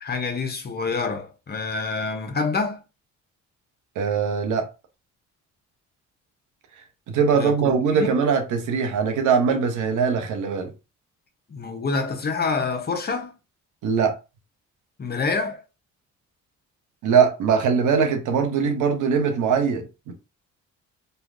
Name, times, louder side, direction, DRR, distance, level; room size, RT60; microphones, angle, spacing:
voice 1, 0.0-2.8 7.3-8.1 11.5-13.3 15.0-15.6, left 4 dB, 30° left, 0.7 m, -27 dB
voice 2, 4.0-4.7 7.1-10.7 13.8-14.2 17.0-20.1, right 6 dB, 80° right, 0.8 m, -21 dB
3.2 x 2.3 x 2.4 m
cardioid pair, 90°, 30 cm